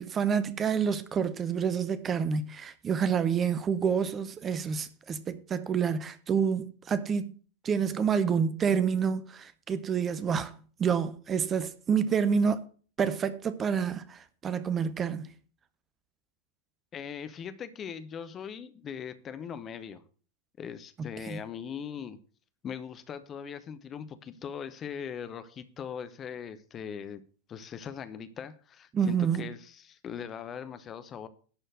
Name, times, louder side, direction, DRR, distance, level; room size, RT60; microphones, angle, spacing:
voice 1, 0.0-7.3 7.6-12.6 13.0-15.3 21.3-21.4 28.9-29.5, right 6 dB, 25° right, 0.7 m, -28 dB
voice 2, 16.9-20.0 20.6-22.2 22.6-27.2 27.5-31.3, left 7 dB, 25° left, 0.9 m, -40 dB
11.5 x 4.4 x 7.5 m
figure-of-eight pair, 90°, 0 cm